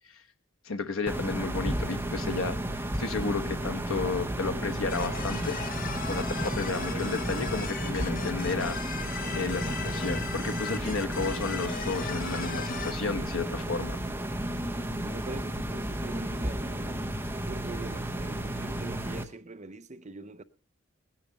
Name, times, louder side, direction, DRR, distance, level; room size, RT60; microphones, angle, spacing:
voice 1, 0.6-5.6 6.1-8.8 9.3-14.0, left 4 dB, 80° left, 1.0 m, -32 dB
sound 1, 1.1-19.2, right 1 dB, 10° right, 1.0 m, -33 dB
sound 2, 4.9-12.9, left 6 dB, 45° left, 0.9 m, -38 dB
voice 2, 15.0-17.0 17.4-20.4, right 2 dB, 35° right, 0.7 m, -43 dB
18.0 x 10.0 x 5.2 m
head